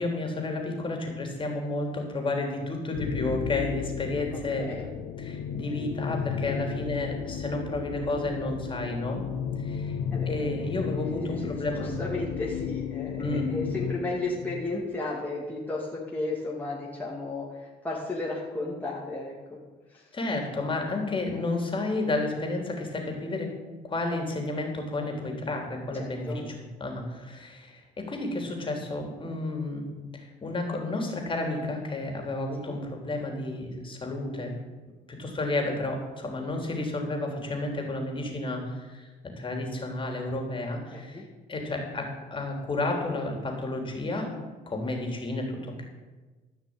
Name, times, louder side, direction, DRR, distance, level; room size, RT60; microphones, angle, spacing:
voice 1, 0.0-4.6 5.2-9.2 9.6-10.0 10.3-11.9 13.2-13.5 20.1-23.5 23.8-26.5 26.8-34.5 35.1-39.1 39.4-44.3 44.7-45.9, left 2 dB, 30° left, 2 dB, 3.3 m, -31 dB
sound 1, 2.9-14.9, left 8 dB, 80° left, 0.9 m, -34 dB
voice 2, 4.3-4.9 6.9-7.1 10.1-19.6 19.9-20.1 25.9-26.5 32.6-32.8 40.9-41.3, left 2 dB, 10° left, -5 dB, 2.4 m, -34 dB
15.0 x 5.9 x 8.8 m, 1.3 s
cardioid pair, 110°, 17 cm